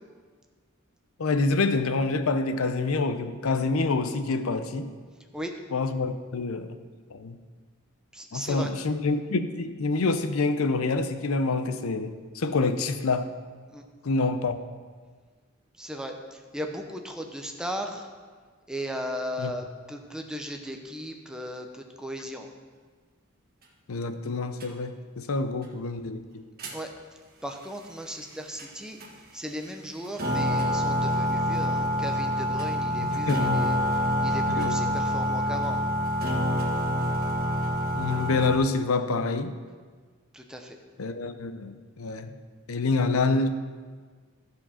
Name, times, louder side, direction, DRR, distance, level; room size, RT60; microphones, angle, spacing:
voice 1, 1.2-4.9 5.7-6.8 7.1-7.4 8.3-13.3 14.0-14.6 19.4-19.5 23.9-26.4 33.1-33.7 34.6-35.0 37.9-39.6 41.0-42.3 42.7-43.5, left 3 dB, 85° left, 10 dB, 0.6 m, -27 dB
voice 2, 8.1-8.7 13.7-13.8 15.8-18.1 18.7-22.5 25.3-25.4 26.6-26.9 27.4-29.0 29.3-35.8 40.3-40.8, equal, 5° right, 3 dB, 0.7 m, -36 dB
sound 1, 24.6-24.7 26.6-26.8 28.6-28.7 29.0-29.1 29.6-29.7 30.0-38.6, equal, 45° right, 1.5 m, -26 dB
14.0 x 4.9 x 5.7 m, 1.5 s
head